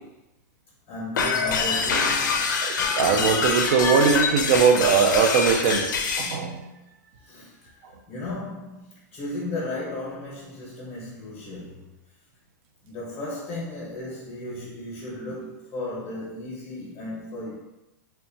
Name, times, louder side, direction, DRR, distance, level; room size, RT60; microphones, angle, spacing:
voice 1, 0.9-2.4 2.7-2.9 7.2-11.9 12.8-17.5, left 1 dB, 25° left, -6 dB, 0.8 m, -35 dB
sound 1, 1.2-6.4, left 5 dB, 85° left, 0.4 m, -25 dB
voice 2, 2.6-5.9 6.2-6.6, right 6 dB, 45° right, 4 dB, 0.4 m, -20 dB
2.7 x 2.2 x 2.7 m, 0.97 s
hypercardioid pair, 145°, 10 cm